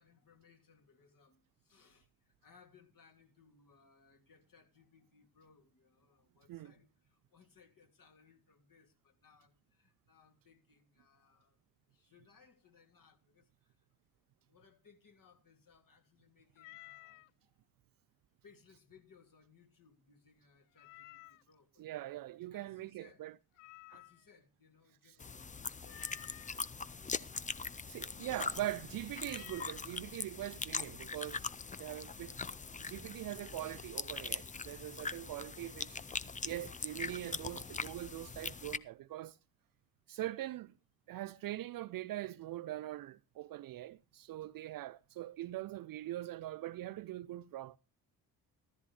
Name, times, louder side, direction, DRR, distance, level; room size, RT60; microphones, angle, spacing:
voice 1, 0.0-11.6 11.9-13.8 14.5-17.5 18.4-21.8 22.5-23.3 23.9-27.1 27.5-28.5, left 5 dB, 40° left, 2.9 m, -66 dB
Meow, 16.6-17.3 20.8-21.5 23.6-24.4 25.8-26.6 29.2-29.8, left 19 dB, 65° left, 0.6 m, -54 dB
voice 2, 21.8-23.3 27.9-31.4 31.8-32.4 32.7-36.0 36.4-39.4 40.1-40.7 41.1-47.8, right 14 dB, 45° right, 0.6 m, -42 dB
sound 1, 25.2-38.8, left 4 dB, 15° left, 0.7 m, -42 dB
14.5 x 14.0 x 3.4 m
figure-of-eight pair, 40°, 50 cm